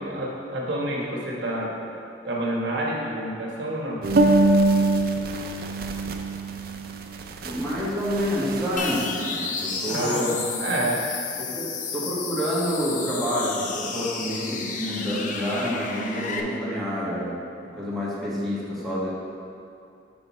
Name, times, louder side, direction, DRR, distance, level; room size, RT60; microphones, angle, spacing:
voice 1, 0.0-1.8 2.2-4.0 9.9-11.0, right 1 dB, 85° right, -3 dB, 1.2 m, -28 dB
sound 1, 4.0-9.0, right 2 dB, 55° right, 0.5 m, -24 dB
voice 2, 7.4-10.4 11.5-11.6 11.9-19.1, equal, ahead, -9 dB, 1.5 m, -28 dB
sound 2, 8.8-16.4, left 5 dB, 45° left, 0.5 m, -32 dB
6.2 x 5.4 x 4.2 m, 2.6 s
head